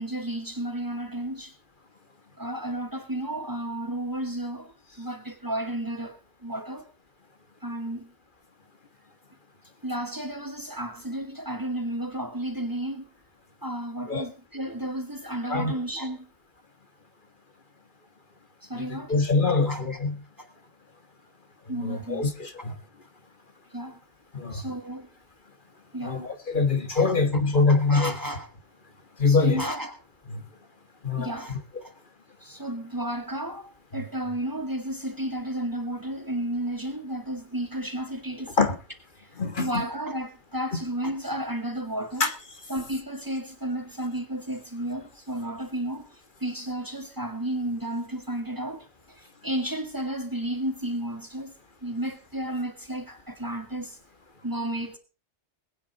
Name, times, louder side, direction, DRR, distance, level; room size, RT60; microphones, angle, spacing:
voice 1, 0.0-1.5 2.4-4.7 5.0-6.9 7.6-8.1 9.8-13.0 13.6-16.3 18.6-19.1 19.7-19.8 20.4-20.5 21.7-22.3 22.6-22.7 23.7-24.0 24.5-25.1 25.9-26.2 26.9-27.1 27.5-28.5 29.3-29.9 31.2-31.6 31.8-31.9 32.4-38.7 39.2-39.3 39.6-42.3 42.7-46.1 46.4-51.5 51.8-54.0 54.4-55.0, right 1 dB, 15° right, 2.1 m, -32 dB
voice 2, 18.7-20.1 21.6-22.8 24.3-24.7 26.0-28.2 29.2-29.7 30.3-30.5 31.0-31.6 33.9-34.0 38.6-38.8 39.3-39.8 40.7-40.8 42.2-42.3, left 4 dB, 45° left, 1.7 m, -24 dB
21.0 x 9.5 x 4.1 m
omnidirectional pair, 1.2 m